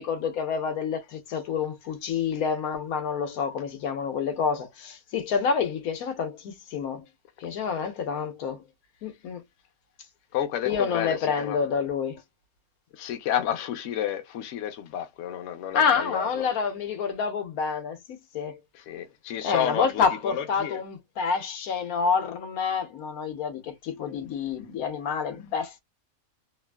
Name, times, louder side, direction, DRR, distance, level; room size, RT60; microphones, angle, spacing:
voice 1, 0.0-7.0 7.4-8.6 9.0-9.4 10.6-12.2 15.7-18.6 19.4-25.8, left 6 dB, 85° left, 1.3 m, -28 dB
voice 2, 10.3-11.6 13.0-16.5 18.9-20.8, left 10 dB, 65° left, 0.9 m, -31 dB
3.0 x 2.4 x 2.3 m
omnidirectional pair, 1.5 m